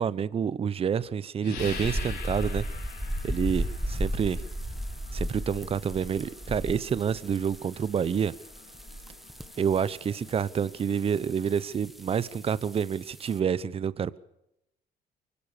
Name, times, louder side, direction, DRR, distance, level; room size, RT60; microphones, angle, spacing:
voice 1, 0.0-2.6 3.2-4.4 5.1-8.3 9.6-14.2, right 7 dB, 35° right, 18 dB, 0.8 m, -28 dB
sound 1, 1.4-11.7, left 6 dB, 80° left, 7.1 m, -46 dB
sound 2, 1.6-13.4, equal, ahead, 1.5 m, -36 dB
24.0 x 17.0 x 6.8 m, 0.84 s
cardioid pair, 110°, 17 cm